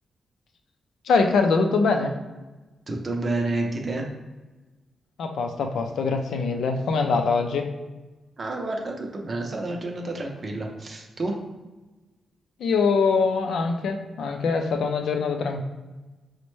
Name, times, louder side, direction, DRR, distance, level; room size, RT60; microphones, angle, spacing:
voice 1, 1.0-2.1 5.2-7.7 12.6-15.6, left 4 dB, 75° left, 5 dB, 0.4 m, -23 dB
voice 2, 2.9-4.0 8.4-11.4, right 2 dB, 35° right, 1 dB, 0.6 m, -29 dB
5.2 x 2.1 x 3.1 m, 1.2 s
wide cardioid pair, 155°, 0 cm